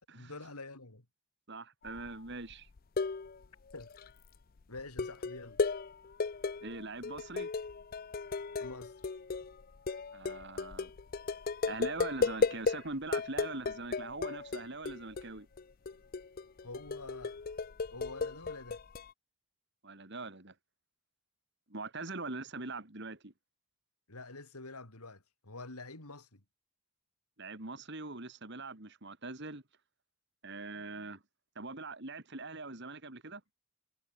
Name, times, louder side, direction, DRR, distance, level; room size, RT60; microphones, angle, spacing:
voice 1, 0.1-1.1 3.7-3.9 4.7-5.6 8.6-9.0 16.6-17.4 17.9-18.8 24.1-26.4, left 3 dB, 90° left, 3.8 m, -47 dB
voice 2, 1.5-2.7 6.6-7.5 10.1-10.9 11.7-15.5 19.8-20.5 21.7-23.3 27.4-29.6 30.4-31.2 31.6-33.4, right 3 dB, 50° right, 2.5 m, -42 dB
sound 1, 1.8-2.2 2.5-3.5 3.7-4.1 4.8-12.8 13.1-15.3 15.6-19.1, left 4 dB, 40° left, 0.5 m, -35 dB
head